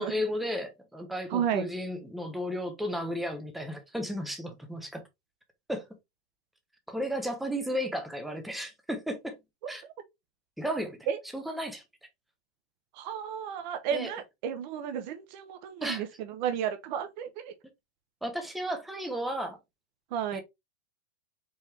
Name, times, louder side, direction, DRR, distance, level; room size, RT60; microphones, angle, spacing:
voice 1, 0.0-5.0 5.7-5.9 6.9-9.4 9.7-9.8 10.6-11.1 11.3-11.8 13.9-14.1 15.8-16.0 18.2-19.6 20.3-20.4, equal, ahead, 0.5 m, -34 dB
voice 2, 1.3-1.7 9.6-9.7 11.1-11.2 12.9-17.5 20.1-20.4, right 8 dB, 45° right, 0.8 m, -32 dB
4.7 x 3.2 x 3.2 m
supercardioid pair, 150°, 32 cm